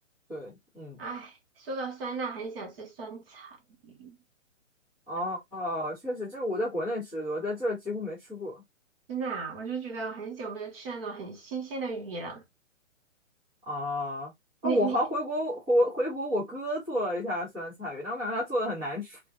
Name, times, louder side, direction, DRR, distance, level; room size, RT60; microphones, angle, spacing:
voice 1, 0.3-1.0 5.1-8.6 13.7-14.3 14.6-19.2, equal, 5° right, 0.4 m, -30 dB
voice 2, 1.0-1.3 1.6-3.6 3.8-4.2 9.1-12.4 14.6-15.0, right 5 dB, 45° right, 1.5 m, -35 dB
3.4 x 2.4 x 2.5 m
hypercardioid pair, 135°, 39 cm